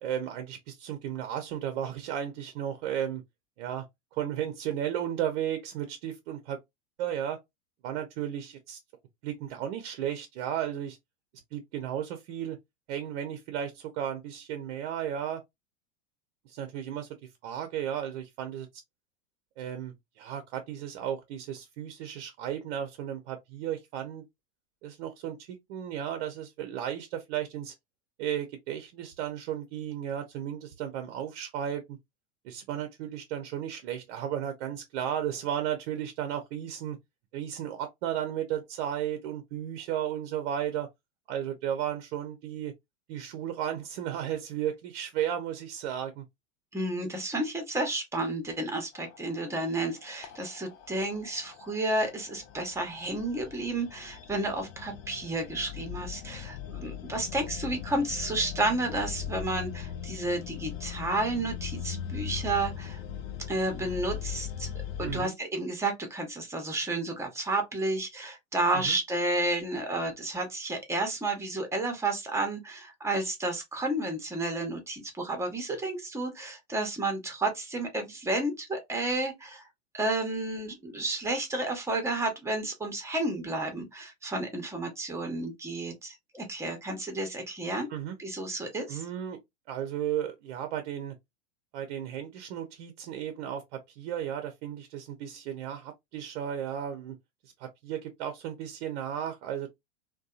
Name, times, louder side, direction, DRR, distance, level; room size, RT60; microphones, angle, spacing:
voice 1, 0.0-3.2 3.6-3.9 4.1-6.6 7.0-7.4 7.8-8.8 9.2-11.0 11.5-12.6 12.9-15.4 16.5-17.1 17.4-18.7 19.6-24.2 24.8-27.7 28.2-32.0 32.4-37.0 37.3-40.9 41.3-42.7 43.1-46.2 65.0-65.3 68.7-69.0 87.9-88.2 88.9-89.4 89.7-91.1 91.7-97.2 97.6-99.7, right 10 dB, 55° right, 0.6 m, -34 dB
voice 2, 46.7-63.0 63.5-64.7 65.0-79.7 79.9-87.9 88.2-89.0, right 2 dB, 5° right, 0.8 m, -31 dB
sound 1, 48.9-65.2, left 9 dB, 35° left, 0.4 m, -40 dB
2.6 x 2.2 x 2.4 m
hypercardioid pair, 105°, 37 cm